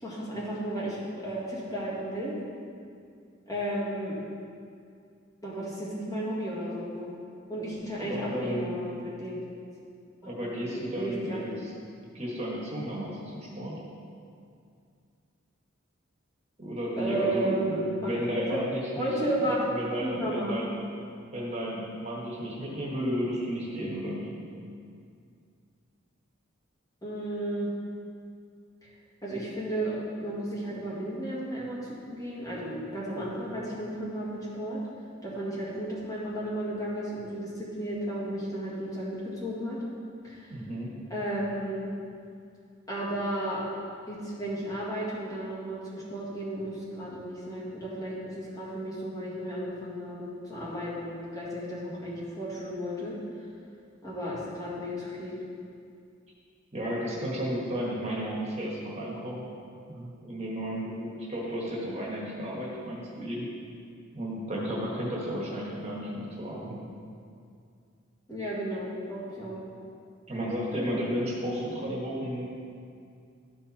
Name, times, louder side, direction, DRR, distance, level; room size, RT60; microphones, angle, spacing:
voice 1, 0.0-2.4 3.5-4.2 5.4-7.1 7.5-9.4 10.4-10.5 10.9-11.4 17.0-18.1 18.5-18.7 19.0-19.7 20.0-20.8 27.0-27.7 28.8-28.9 29.2-34.8 35.2-39.8 40.2-40.5 41.1-41.9 42.9-43.7 44.1-53.2 54.0-55.4 68.3-69.6, right 1 dB, 20° left, -8 dB, 2.1 m, -33 dB
voice 2, 8.1-8.8 10.2-11.7 12.1-13.7 16.6-19.1 19.4-20.7 21.3-24.3 40.5-40.9 56.7-59.4 59.9-63.4 64.1-66.9 70.3-72.5, equal, 30° right, -5 dB, 1.5 m, -33 dB
13.0 x 4.6 x 4.2 m, 2.4 s
head